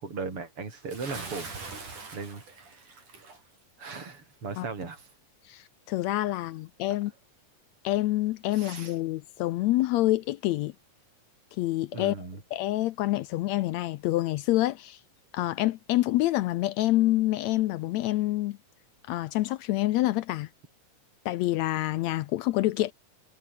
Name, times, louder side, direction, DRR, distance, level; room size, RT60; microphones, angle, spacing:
voice 1, 0.0-1.5 2.1-3.0 3.8-5.1 8.5-9.0 11.9-12.4, right 4 dB, 40° right, 5.4 m, -38 dB
Bathtub (filling or washing) / Splash splatter, 0.9-3.4, right 4 dB, 65° right, 8.0 m, -42 dB
voice 2, 5.5-7.1 7.8-10.7 11.6-15.0 15.3-18.6 19.1-20.5 21.2-22.9, left 16 dB, 80° left, 1.6 m, -27 dB
omnidirectional pair, 3.8 m